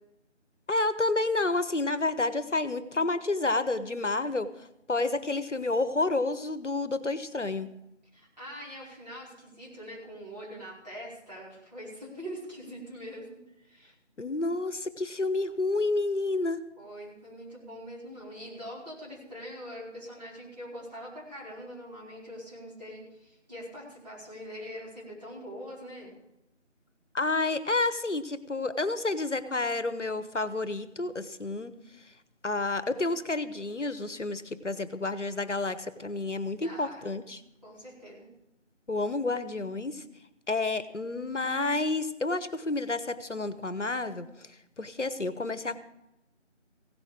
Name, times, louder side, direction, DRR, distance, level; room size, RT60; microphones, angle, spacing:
voice 1, 0.7-7.7 14.2-16.6 27.1-31.7 32.4-37.4 38.9-40.0 40.5-44.5 44.8-45.8, left 2 dB, 70° left, 13 dB, 1.0 m, -30 dB
voice 2, 8.1-13.9 16.8-26.1 36.6-37.0 37.6-38.3, equal, 35° right, -6 dB, 4.4 m, -43 dB
16.0 x 10.5 x 5.0 m, 0.86 s
figure-of-eight pair, 175°, 37 cm